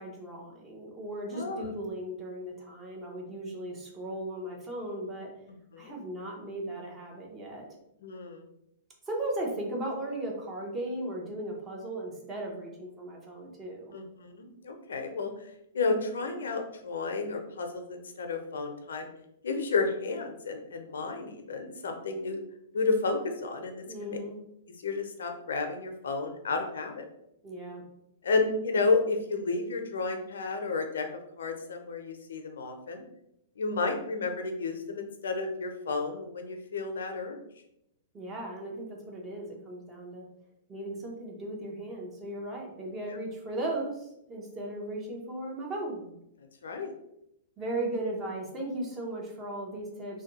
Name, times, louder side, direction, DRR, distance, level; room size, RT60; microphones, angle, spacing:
voice 1, 0.0-5.3 5.8-7.7 9.1-13.9 23.9-24.4 27.4-27.9 38.1-40.3 40.7-46.2 47.6-50.2, right 1 dB, 20° right, -1 dB, 0.9 m, -37 dB
voice 2, 1.3-1.7 5.7-6.0 8.0-8.4 13.9-15.5 15.7-19.1 19.4-22.4 22.7-24.2 24.8-27.1 28.2-31.1 31.4-33.0 33.6-37.4 46.6-46.9, left 3 dB, 85° left, 5 dB, 0.5 m, -31 dB
2.6 x 2.2 x 4.0 m, 0.81 s
hypercardioid pair, 130°, 0 cm